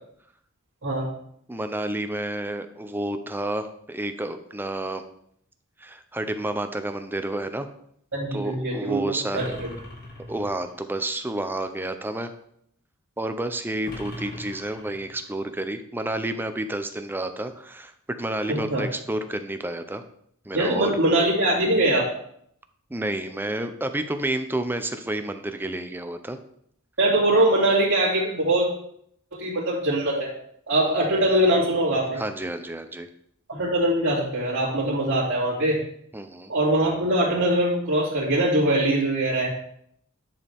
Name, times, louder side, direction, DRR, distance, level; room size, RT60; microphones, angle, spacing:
voice 1, 1.5-5.0 5.8-7.7 8.3-9.6 10.3-12.3 13.2-20.0 20.4-20.9 22.9-26.4 32.2-33.1 36.1-36.5, right 1 dB, 10° right, 8 dB, 0.6 m, -30 dB
voice 2, 8.1-9.7 18.5-18.8 20.5-22.1 27.0-28.7 29.3-30.3 30.7-32.2 33.5-35.8 36.5-39.5, right 1 dB, 65° right, -9 dB, 2.8 m, -22 dB
sound 1, 9.3-10.8 13.9-15.4, left 1 dB, 50° left, 1.9 m, -40 dB
10.5 x 6.8 x 3.6 m, 0.69 s
head